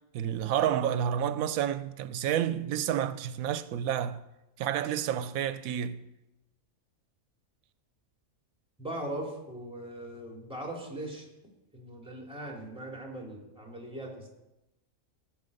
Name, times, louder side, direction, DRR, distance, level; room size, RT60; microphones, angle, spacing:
voice 1, 0.1-4.2 4.6-6.1, right 10 dB, 85° right, 1.0 m, -30 dB
voice 2, 8.8-11.3 11.7-14.3, right 1 dB, 5° right, 2.5 m, -39 dB
14.5 x 6.5 x 5.3 m
omnidirectional pair, 1.4 m